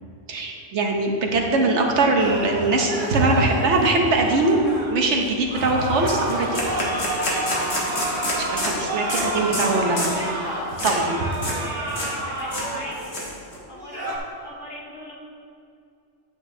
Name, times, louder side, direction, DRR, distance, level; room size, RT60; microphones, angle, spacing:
voice 1, 0.3-4.6 4.9-6.7 8.4-10.1 10.8-11.2, right 2 dB, 65° right, 1 dB, 1.2 m, -21 dB
sound 1, 2.2-4.9 5.5-13.3 13.7-14.2, right 1 dB, 40° right, 1.1 m, -30 dB
sound 2, 4.7-4.8 5.1-5.3 5.6-5.7 6.0-8.7 9.1-9.2 9.5-9.7 10.0-10.2 10.8-11.0 11.3-11.6 11.9-12.1 12.4-13.6, left 1 dB, 55° left, 1.8 m, -28 dB
voice 2, 7.5-8.7 9.7-13.2 13.7-14.1 14.4-15.1, equal, 80° left, -4 dB, 2.0 m, -39 dB
8.6 x 8.6 x 2.7 m, 2.4 s
omnidirectional pair, 1.3 m